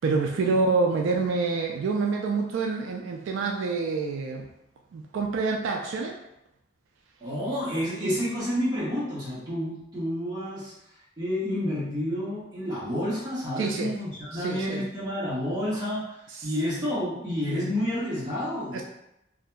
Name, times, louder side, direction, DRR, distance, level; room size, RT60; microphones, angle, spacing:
voice 1, 0.0-4.5 4.9-6.2 8.0-8.1 13.6-13.9 14.3-14.9 16.3-16.5 18.7-18.8, right 4 dB, 80° right, 1 dB, 0.3 m, -27 dB
voice 2, 7.2-10.7 11.2-16.1 16.4-18.8, equal, 20° right, -10 dB, 1.1 m, -29 dB
2.8 x 2.5 x 2.2 m, 0.84 s
head